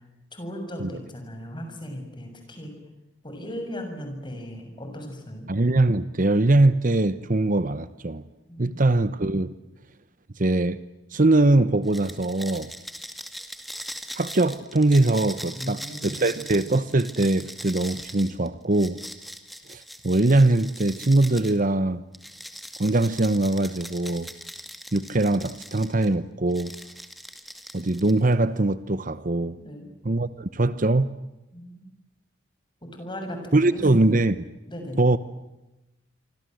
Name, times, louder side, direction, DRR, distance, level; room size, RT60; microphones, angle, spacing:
voice 1, 0.3-2.7 3.2-5.5 8.5-8.9 15.6-16.4 29.6-29.9 31.5-31.8 32.9-34.1 34.7-35.0, equal, 25° left, 5 dB, 7.1 m, -37 dB
voice 2, 5.5-8.2 8.6-9.5 10.4-10.8 11.1-12.7 14.1-19.0 19.7-22.0 22.8-24.3 24.9-26.7 27.7-29.6 30.0-31.1 33.5-34.4 35.0-35.2, right 2 dB, 45° right, 14 dB, 0.9 m, -22 dB
sound 1, 11.8-21.6 22.1-26.1 26.5-28.3, equal, ahead, 2.2 m, -41 dB
26.5 x 26.0 x 7.9 m, 0.96 s
head